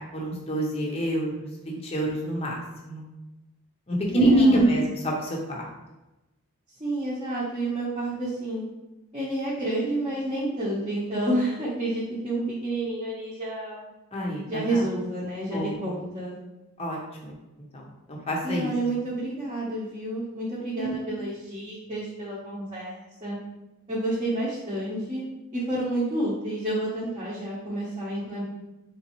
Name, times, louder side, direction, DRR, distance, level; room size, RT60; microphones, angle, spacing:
voice 1, 0.1-3.0 3.9-5.6 14.1-14.6 15.5-15.7 16.8-17.3 17.7-17.8 18.1-18.7 20.8-21.0, right 1 dB, 30° left, -2 dB, 0.7 m, -26 dB
voice 2, 4.1-4.8 6.8-8.6 9.1-13.9 14.4-16.4 18.4-23.4 23.9-25.2 25.5-28.4, right 1 dB, 25° right, -9 dB, 0.8 m, -30 dB
4.1 x 3.2 x 3.0 m, 0.99 s
head